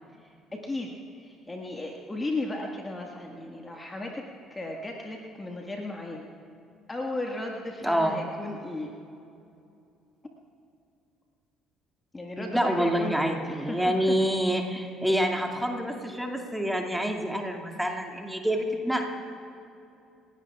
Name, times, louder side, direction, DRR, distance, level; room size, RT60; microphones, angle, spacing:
voice 1, 0.5-0.9 1.2-4.2 4.5-6.2 6.9-8.9 12.1-14.1 14.7-14.9, left 2 dB, 20° left, 0 dB, 1.7 m, -35 dB
voice 2, 7.8-8.2 12.4-19.1, equal, 5° right, 2 dB, 2.3 m, -27 dB
29.5 x 17.0 x 2.4 m, 2.6 s
figure-of-eight pair, 50°, 0 cm